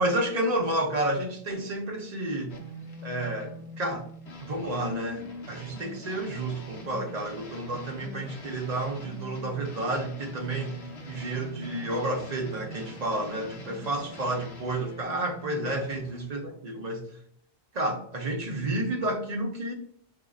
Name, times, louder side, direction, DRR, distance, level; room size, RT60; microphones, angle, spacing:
voice 1, 0.0-2.5 3.0-4.1 4.4-10.8 11.1-17.1 17.7-19.7, right 1 dB, 45° right, 2 dB, 0.8 m, -30 dB
sound 1, 2.5-16.3, equal, 90° left, 1.1 m, -43 dB
6.3 x 2.8 x 2.4 m, 0.64 s
omnidirectional pair, 1.1 m